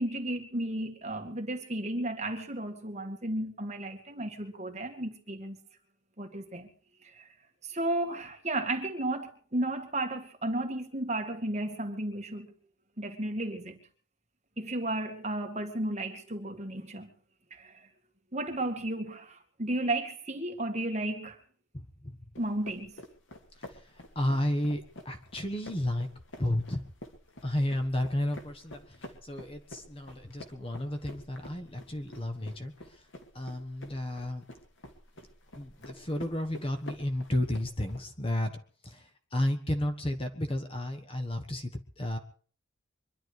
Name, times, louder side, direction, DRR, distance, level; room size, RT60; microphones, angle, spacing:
voice 1, 0.0-5.6 6.2-6.7 7.0-7.3 7.6-12.5 13.0-13.8 14.6-17.1 17.5-17.9 18.3-21.4 22.4-22.9, right 1 dB, 35° right, 2.2 m, -33 dB
voice 2, 21.7-22.2 23.5-26.1 26.4-26.8 27.4-33.0 33.3-34.4 35.5-38.5 38.8-42.2, left 1 dB, 25° left, 1.4 m, -32 dB
sound 1, 22.3-38.0, left 1 dB, 65° left, 2.7 m, -49 dB
24.0 x 11.5 x 4.8 m
head